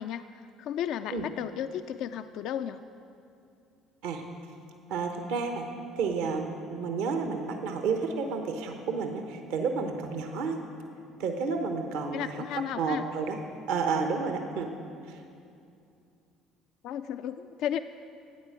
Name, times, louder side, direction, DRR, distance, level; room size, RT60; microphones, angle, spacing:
voice 1, 0.0-2.8 12.1-13.1 16.8-17.8, left 9 dB, 65° left, 10 dB, 0.3 m, -34 dB
voice 2, 4.9-5.7 6.0-10.6 11.2-12.3 12.8-13.4 13.7-14.7 15.1-15.2, right 5 dB, 75° right, 5 dB, 1.0 m, -31 dB
14.0 x 9.2 x 6.2 m, 2.5 s
hypercardioid pair, 60°, 0 cm